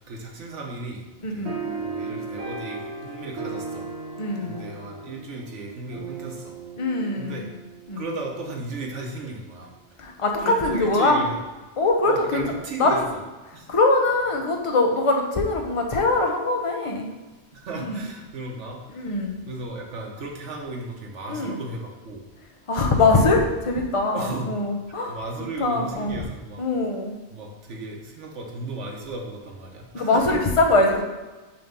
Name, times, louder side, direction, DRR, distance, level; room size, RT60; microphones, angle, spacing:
voice 1, 0.1-1.4 1.7-3.9 4.4-6.5 7.2-7.5 8.0-9.7 10.4-11.4 12.0-13.0 13.5-13.7 17.5-19.1 19.4-22.2 22.9-23.0 24.1-24.5 24.9-26.6 27.3-30.2, right 2 dB, 85° right, 0 dB, 1.4 m, -35 dB
voice 2, 1.2-1.5 4.2-4.6 6.8-7.4 7.9-8.0 10.0-11.2 11.8-12.5 12.8-13.1 13.7-17.1 17.8-18.1 18.9-19.4 21.3-21.6 22.7-25.2 25.6-26.2 26.6-27.1 29.9-31.0, left 2 dB, 30° left, 2 dB, 0.7 m, -22 dB
sound 1, 1.5-8.3, right 4 dB, 65° right, 1.4 m, -36 dB
5.8 x 3.4 x 5.2 m, 1.2 s
omnidirectional pair, 1.2 m